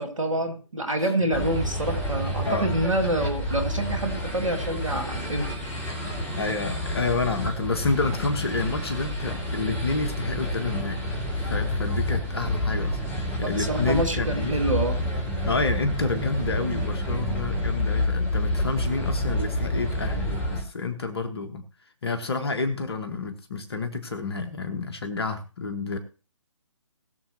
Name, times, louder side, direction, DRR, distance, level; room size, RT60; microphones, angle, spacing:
voice 1, 0.0-5.7 13.6-15.0, right 1 dB, 80° right, 6 dB, 2.2 m, -27 dB
sound 1, 1.3-20.6, equal, 10° left, 2.4 m, -29 dB
voice 2, 6.3-11.0 11.4-14.6 15.4-21.6 22.0-26.0, left 3 dB, 50° left, 7 dB, 1.4 m, -29 dB
20.0 x 7.1 x 2.9 m, 0.36 s
figure-of-eight pair, 135°, 16 cm